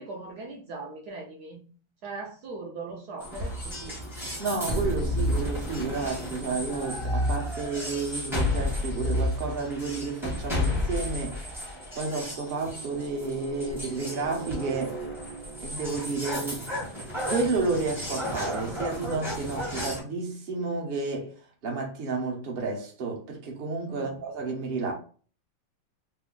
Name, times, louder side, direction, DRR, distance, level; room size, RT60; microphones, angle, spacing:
voice 1, 0.0-1.6 2.0-4.0 23.9-24.2, right 3 dB, 70° right, 1.0 m, -40 dB
sound 1, 3.2-20.0, left 1 dB, ahead, 0.5 m, -33 dB
sound 2, 3.4-4.3 5.0-6.3 6.9-8.2 8.9-10.1, equal, 70° left, 0.7 m, -31 dB
voice 2, 4.4-11.4 11.9-15.0 15.6-16.6 17.3-21.3 21.6-24.9, right 4 dB, 50° right, 0.7 m, -31 dB
3.3 x 2.0 x 3.7 m
omnidirectional pair, 2.2 m